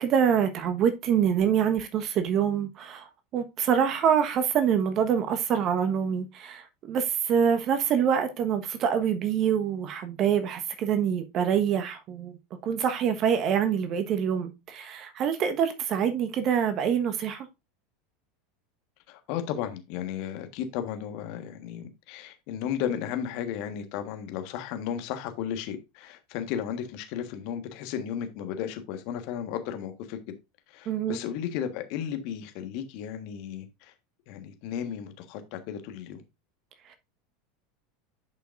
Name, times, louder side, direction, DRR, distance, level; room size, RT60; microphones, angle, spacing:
voice 1, 0.0-12.4 12.6-17.5 30.9-31.2, right 8 dB, 40° right, 1.3 m, -25 dB
voice 2, 19.1-30.3 30.7-33.9 34.3-36.2, left 9 dB, 55° left, 1.4 m, -34 dB
10.5 x 5.6 x 2.6 m
figure-of-eight pair, 80°, 0 cm